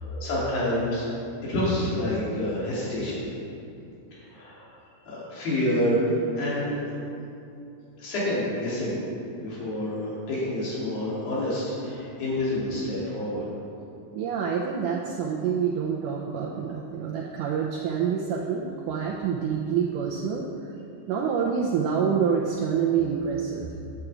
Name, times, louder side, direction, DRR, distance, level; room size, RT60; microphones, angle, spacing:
voice 1, 0.1-1.1 1.4-3.2 4.3-4.7 5.1-6.1 6.3-6.8 8.0-9.0 9.3-13.5, left 1 dB, 65° left, -8 dB, 4.4 m, -28 dB
voice 2, 14.1-20.5 21.1-23.7, right 7 dB, 80° right, -1 dB, 1.8 m, -27 dB
10.0 x 7.9 x 4.8 m, 2.6 s
omnidirectional pair, 4.4 m